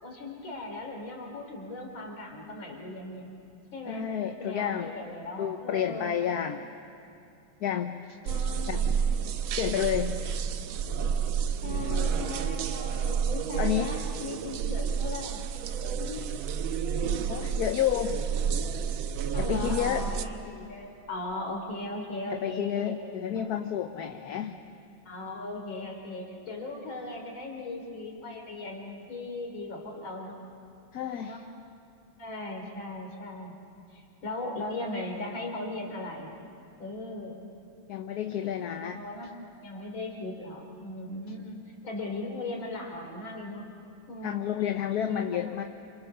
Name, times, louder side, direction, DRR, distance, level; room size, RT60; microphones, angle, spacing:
voice 1, 0.0-3.3 3.7-4.1 4.4-6.2 8.2-9.0 11.6-15.5 16.0-16.2 16.8-17.6 18.0-18.2 19.3-23.0 23.3-23.4 24.3-24.6 25.1-30.4 31.2-31.4 32.2-33.6 33.9-36.4 36.8-37.5 38.8-43.7 44.1-44.6 45.1-45.4, left 2 dB, 80° left, 2 dB, 4.1 m, -38 dB
voice 2, 3.9-4.9 5.4-6.7 7.6-8.1 8.7-8.8 9.6-10.2 13.6-14.0 17.3-18.2 19.4-20.1 22.3-24.6 30.9-31.4 37.9-39.0 44.2-45.6, left 10 dB, 60° left, 6 dB, 1.2 m, -30 dB
sound 1, 8.3-20.3, right 7 dB, 90° right, 1.7 m, -30 dB
28.0 x 27.5 x 6.8 m, 2.6 s
omnidirectional pair, 2.2 m